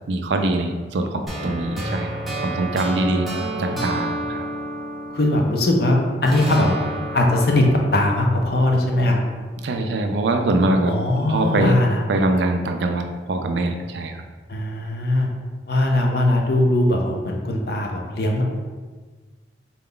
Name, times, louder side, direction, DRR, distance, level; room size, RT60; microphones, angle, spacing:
voice 1, 0.1-2.1 2.4-3.3 3.6-4.5 9.6-11.8 12.1-14.2, right 2 dB, 75° right, 5 dB, 0.4 m, -23 dB
sound 1, 1.3-5.8 6.3-9.3, right 1 dB, ahead, 0.6 m, -31 dB
voice 2, 3.5-3.8 5.1-6.7 7.1-7.6 7.9-9.2 10.9-12.0 14.5-15.3 15.7-18.4, left 1 dB, 55° left, 1 dB, 0.5 m, -20 dB
3.9 x 2.3 x 3.7 m, 1.4 s
head